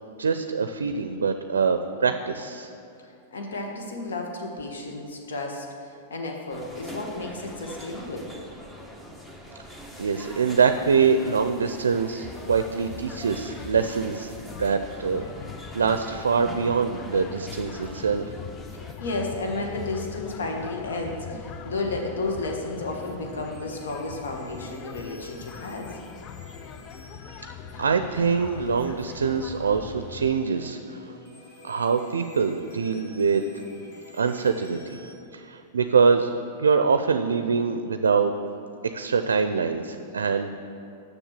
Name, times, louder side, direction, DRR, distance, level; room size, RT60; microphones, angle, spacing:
voice 1, 0.2-2.7 10.0-14.3 14.6-15.3 15.7-18.3 27.8-31.1 31.6-33.4 34.1-35.0 35.3-36.3 36.6-38.3 38.9-40.5, right 5 dB, 85° right, 9 dB, 0.4 m, -24 dB
voice 2, 3.3-8.3 19.0-26.0, left 2 dB, 80° left, 1 dB, 1.5 m, -32 dB
sound 1, 6.5-18.9, equal, 10° left, 1.1 m, -43 dB
sound 2, 12.2-30.3, left 9 dB, 35° left, 0.4 m, -42 dB
sound 3, 19.6-35.1, left 1 dB, 60° left, 1.6 m, -48 dB
7.2 x 6.6 x 7.4 m, 2.7 s
hypercardioid pair, 105°, 0 cm